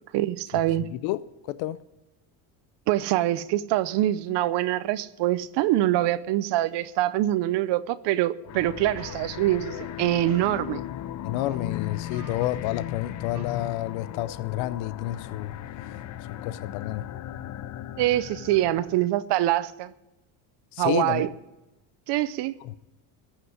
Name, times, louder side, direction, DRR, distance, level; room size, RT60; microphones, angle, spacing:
voice 1, 0.1-0.8 2.9-10.8 18.0-19.9 20.8-21.3 22.1-22.8, right 14 dB, 60° right, 0.7 m, -24 dB
sound 1, 8.4-19.1, left 12 dB, 40° left, 0.5 m, -37 dB
sound 2, 8.4-8.5 8.9-9.2 9.6-10.0 10.2-10.6 11.3-11.7 11.9-12.6 13.3-13.9, right 9 dB, 85° right, 2.1 m, -48 dB
voice 2, 11.2-15.6 16.4-17.0 20.7-21.3 22.6-22.7, left 15 dB, 75° left, 0.7 m, -30 dB
15.0 x 5.9 x 9.6 m
cardioid pair, 115°, 47 cm